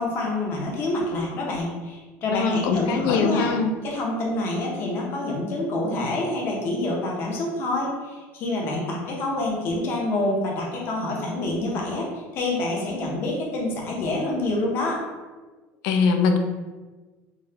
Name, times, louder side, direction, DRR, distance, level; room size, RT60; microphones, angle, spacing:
voice 1, 0.0-3.5 3.8-15.0, left 2 dB, 40° left, -2 dB, 0.7 m, -27 dB
voice 2, 2.3-3.7 15.8-16.4, left 5 dB, 65° left, 6 dB, 0.4 m, -22 dB
3.8 x 2.2 x 2.7 m, 1.3 s
cardioid pair, 160°, 6 cm